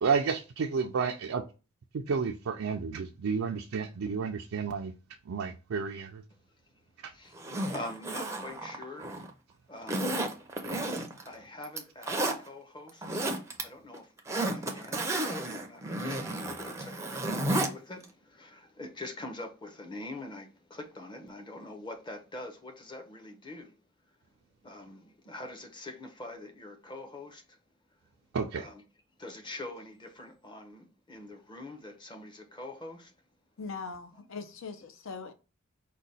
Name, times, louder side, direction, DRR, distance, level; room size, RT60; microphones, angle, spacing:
voice 1, 0.0-1.4 1.9-4.9 5.3-6.2 7.0-7.1 28.3-28.7, right 5 dB, 65° right, 0.4 m, -31 dB
voice 2, 7.1-9.1 9.7-10.2 11.2-13.3 13.6-14.1 14.5-23.8 24.6-27.6 28.5-28.8 29.2-33.1, left 2 dB, 20° left, 0.8 m, -44 dB
Zipper (clothing), 7.4-9.3 9.9-11.3 11.6-12.4 12.9-13.6 13.9-17.7 18.0-18.1, right 1 dB, 15° right, 0.5 m, -32 dB
voice 3, 33.6-35.3, left 4 dB, 60° left, 0.6 m, -41 dB
4.9 x 2.2 x 4.0 m
head